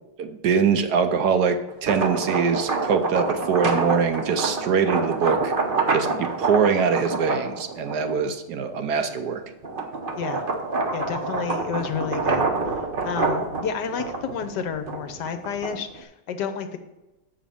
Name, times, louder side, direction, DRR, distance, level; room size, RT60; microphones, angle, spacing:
voice 1, 0.2-5.5 5.9-9.4, right 6 dB, 70° right, 8 dB, 1.2 m, -23 dB
sound 1, 1.7-8.3 8.8-16.0, right 3 dB, 40° right, 0.8 m, -27 dB
voice 2, 10.9-12.5 13.0-16.8, left 7 dB, 70° left, 8 dB, 1.4 m, -30 dB
7.5 x 5.1 x 7.0 m, 1.0 s
omnidirectional pair, 2.0 m